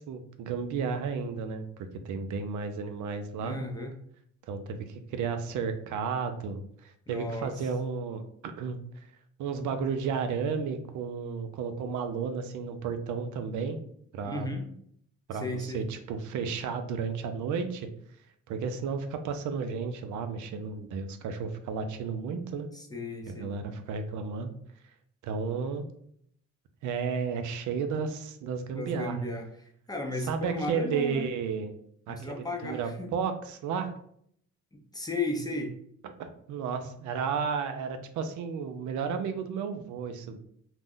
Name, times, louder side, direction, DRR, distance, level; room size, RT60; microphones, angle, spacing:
voice 1, 0.0-3.6 4.5-8.8 9.4-13.8 14.1-14.5 15.3-17.9 18.5-22.7 23.2-24.5 25.2-25.8 26.8-29.3 30.3-31.7 32.1-33.9 36.2-40.4, right 5 dB, 75° right, 7 dB, 0.5 m, -33 dB
voice 2, 3.4-4.0 7.1-7.7 14.2-14.6 15.3-15.8 22.7-23.5 28.7-31.2 32.1-33.1 34.7-35.8, left 2 dB, 15° left, 2 dB, 0.5 m, -35 dB
2.4 x 2.1 x 3.5 m, 0.67 s
cardioid pair, 90°, 30 cm